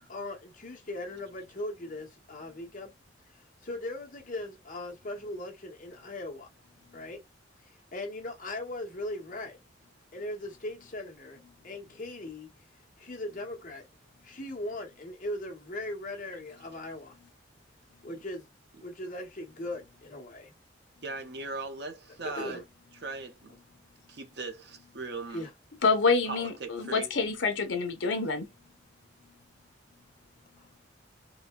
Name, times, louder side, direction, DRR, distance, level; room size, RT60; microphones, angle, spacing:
voice 1, 0.1-2.9 3.3-6.5 6.9-7.2 7.6-9.6 10.1-11.4 11.6-12.5 13.0-13.8 14.2-17.2 18.0-18.5 18.8-20.5 22.1-22.6 25.3-25.5 30.6-30.7, left 1 dB, 40° left, 1.1 m, -39 dB
voice 2, 21.0-22.6 23.0-23.5 24.1-25.4 26.3-27.1, right 3 dB, 55° right, 0.7 m, -39 dB
voice 3, 25.8-28.5, left 4 dB, 75° left, 0.8 m, -27 dB
4.0 x 2.2 x 2.2 m
head